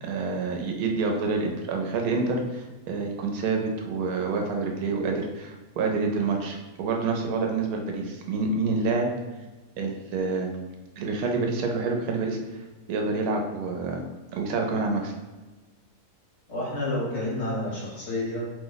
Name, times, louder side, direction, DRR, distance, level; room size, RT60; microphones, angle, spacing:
voice 1, 0.0-9.1 9.8-10.5 11.0-12.4 12.9-14.0 14.3-15.1, right 4 dB, 85° right, 2 dB, 1.1 m, -27 dB
voice 2, 16.5-18.5, left 1 dB, 55° left, -6 dB, 1.2 m, -29 dB
2.8 x 2.0 x 3.8 m, 1.2 s
omnidirectional pair, 1.5 m